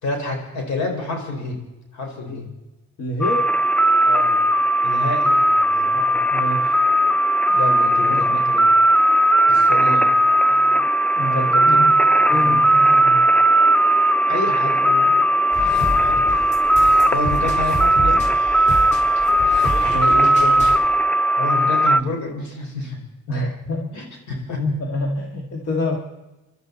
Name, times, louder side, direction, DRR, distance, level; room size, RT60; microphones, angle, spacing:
voice 1, 0.0-1.6 1.9-2.5 4.0-4.4 4.8-5.9 7.5-8.7 9.5-10.1 11.3-11.8 12.3-12.5 14.3-15.1 15.6-16.2 17.1-18.2 21.4-23.0 23.9-24.6, left 3 dB, 70° left, 2 dB, 4.8 m, -29 dB
voice 2, 3.0-3.5 5.9-6.8 8.1-8.4 11.2-11.9 12.3-13.2 19.8-20.7 23.3-24.0 24.6-26.0, left 1 dB, 50° left, 2 dB, 2.0 m, -27 dB
sound 1, 3.2-22.0, right 1 dB, 5° left, 0.7 m, -17 dB
sound 2, 15.5-20.8, right 1 dB, 25° left, 4.5 m, -29 dB
26.0 x 12.0 x 4.1 m, 1.0 s
cardioid pair, 90°, 30 cm